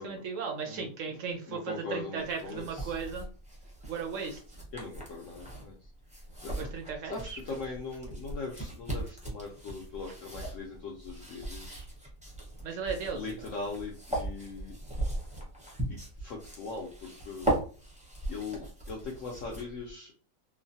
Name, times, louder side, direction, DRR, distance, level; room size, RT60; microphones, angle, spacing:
voice 1, 0.0-3.2 3.9-4.4 6.6-7.4 12.6-13.4, right 5 dB, 70° right, 2 dB, 0.7 m, -36 dB
voice 2, 1.5-3.0 4.7-5.8 6.4-6.5 7.0-11.8 13.1-14.7 15.9-17.5 18.3-20.1, left 4 dB, 75° left, -1 dB, 0.7 m, -40 dB
sound 1, 2.2-19.9, right 1 dB, 10° right, 0.4 m, -38 dB
3.1 x 2.1 x 2.6 m, 0.39 s
omnidirectional pair, 1.8 m